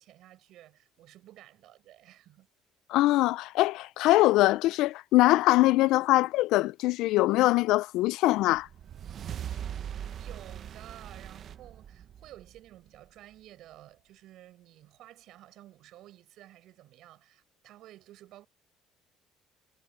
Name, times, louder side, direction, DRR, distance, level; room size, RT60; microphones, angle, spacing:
voice 1, 0.0-2.5 9.8-18.5, right 14 dB, 70° right, 5.6 m, -53 dB
voice 2, 2.9-8.7, left 18 dB, 80° left, 0.4 m, -23 dB
sound 1, 8.5-13.1, right 9 dB, 55° right, 1.0 m, -40 dB
cardioid pair, 100°, 0 cm